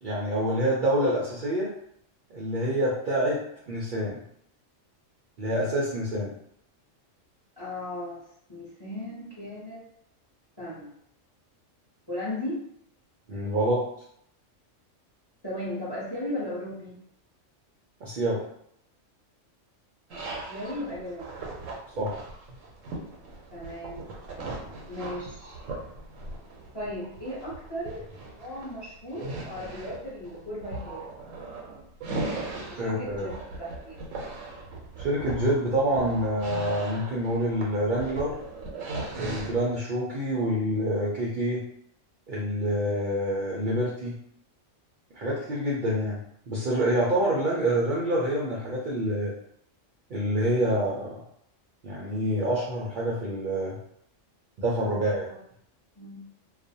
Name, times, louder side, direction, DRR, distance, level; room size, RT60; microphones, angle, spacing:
voice 1, 0.0-1.7 2.3-3.4 3.7-4.2 5.4-6.3 13.3-13.9 18.0-18.4 22.0-22.2 32.8-33.3 35.0-38.4 39.1-41.6 42.3-44.1 45.1-46.2 46.5-49.3 50.1-51.1 51.8-53.8 54.6-55.2, right 1 dB, 60° right, -5 dB, 0.5 m, -27 dB
voice 2, 7.6-8.2 8.5-9.8 10.6-10.9 12.1-12.6 15.4-17.0 20.1-20.2 20.5-21.4 23.5-24.0 24.9-25.7 26.7-31.0 32.7-34.0 54.8-55.2 56.0-56.3, left 1 dB, 25° left, -7 dB, 0.6 m, -36 dB
sound 1, 20.1-39.8, right 2 dB, 85° right, 0.9 m, -39 dB
2.4 x 2.1 x 2.6 m, 0.71 s
omnidirectional pair, 1.3 m